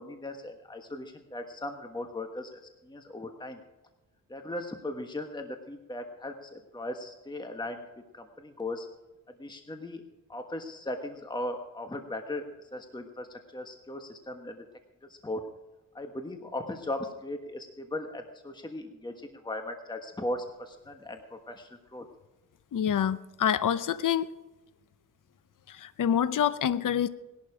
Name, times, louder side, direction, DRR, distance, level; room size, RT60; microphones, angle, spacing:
voice 1, 0.0-3.6 4.3-7.8 8.1-8.9 9.4-14.6 15.1-15.4 15.9-22.1, left 1 dB, 10° left, 5 dB, 1.3 m, -38 dB
voice 2, 22.7-24.3 25.8-27.1, left 9 dB, 60° left, 14 dB, 0.7 m, -26 dB
19.0 x 11.5 x 4.9 m, 1.1 s
wide cardioid pair, 100°, 36 cm